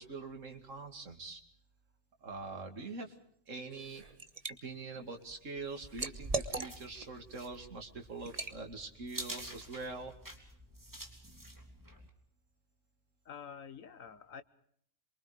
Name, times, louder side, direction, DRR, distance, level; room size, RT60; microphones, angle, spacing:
voice 1, 0.0-1.4 2.2-3.1 3.5-4.0 4.6-10.1, right 3 dB, 75° right, 4 dB, 2.7 m, -44 dB
Liquid, 3.7-4.5 5.0-7.1 7.5-7.7 8.3-8.6, right 3 dB, 30° right, 1.2 m, -39 dB
sound 1, 5.9-12.1, right 1 dB, 15° right, 3.2 m, -49 dB
voice 2, 13.2-14.4, left 7 dB, 90° left, 12 dB, 1.7 m, -48 dB
27.5 x 24.0 x 5.0 m, 0.65 s
omnidirectional pair, 1.3 m